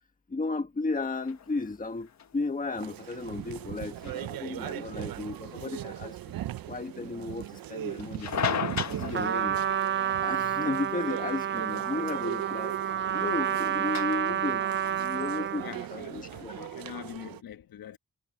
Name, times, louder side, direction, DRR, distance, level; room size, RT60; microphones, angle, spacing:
voice 1, 0.3-6.2 6.6-8.5 8.9-9.6 10.2-12.8 13.1-14.6 15.0-16.7, left 3 dB, 25° left, 1.6 m, -34 dB
sound 1, 1.1-16.3, left 7 dB, 55° left, 1.5 m, -40 dB
sound 2, 2.8-17.4, right 13 dB, 80° right, 0.6 m, -39 dB
Trumpet, 9.1-15.7, right 9 dB, 35° right, 0.4 m, -29 dB
voice 2, 15.6-18.0, left 10 dB, 85° left, 1.4 m, -44 dB
wide cardioid pair, 155°, 34 cm